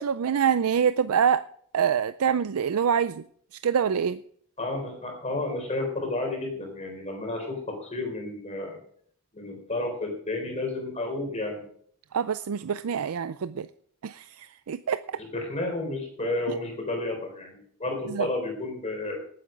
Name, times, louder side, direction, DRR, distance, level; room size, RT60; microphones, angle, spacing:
voice 1, 0.0-1.4 1.7-3.2 3.6-4.2 12.1-13.7 14.0-15.0 18.1-18.3, right 7 dB, 85° right, 13 dB, 0.4 m, -25 dB
voice 2, 4.6-8.8 9.3-11.6 15.1-19.2, left 2 dB, 30° left, 3 dB, 4.2 m, -31 dB
18.5 x 8.5 x 5.2 m, 0.62 s
head